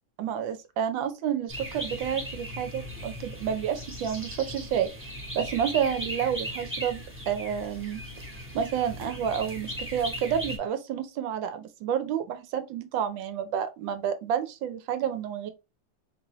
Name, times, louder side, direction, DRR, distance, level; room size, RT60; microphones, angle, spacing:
voice 1, 0.2-4.9 5.3-8.0 8.5-15.5, right 8 dB, 80° right, 1.4 m, -30 dB
sound 1, 1.5-10.6, equal, 10° right, 0.6 m, -38 dB
4.0 x 2.7 x 3.0 m
omnidirectional pair, 2.1 m